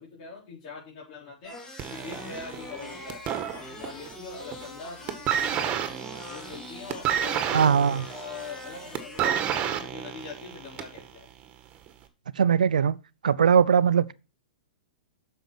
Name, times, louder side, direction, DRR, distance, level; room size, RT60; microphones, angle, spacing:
voice 1, 0.0-1.6 1.9-3.2 3.5-5.8 6.3-11.3 13.5-13.6, left 4 dB, 45° left, 4.3 m, -43 dB
sound 1, 1.4-9.3, left 2 dB, 15° left, 3.7 m, -43 dB
sound 2, 1.8-4.1 4.4-4.8 5.1-11.0 11.9-12.0, right 9 dB, 30° right, 1.7 m, -30 dB
voice 2, 7.5-8.0 12.4-13.0 13.2-14.1, right 7 dB, 75° right, 0.6 m, -20 dB
8.1 x 6.6 x 5.9 m
hypercardioid pair, 115°, 4 cm